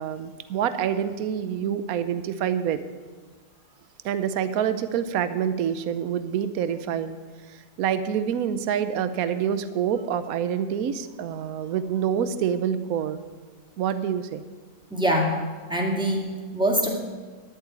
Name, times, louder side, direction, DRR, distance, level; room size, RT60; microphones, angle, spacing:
voice 1, 0.0-2.8 4.0-7.2 7.8-13.2 13.8-14.4, right 8 dB, 75° right, 12 dB, 1.1 m, -26 dB
voice 2, 14.9-16.9, equal, 5° right, -1 dB, 2.1 m, -24 dB
10.5 x 7.8 x 9.6 m, 1.4 s
omnidirectional pair, 1.5 m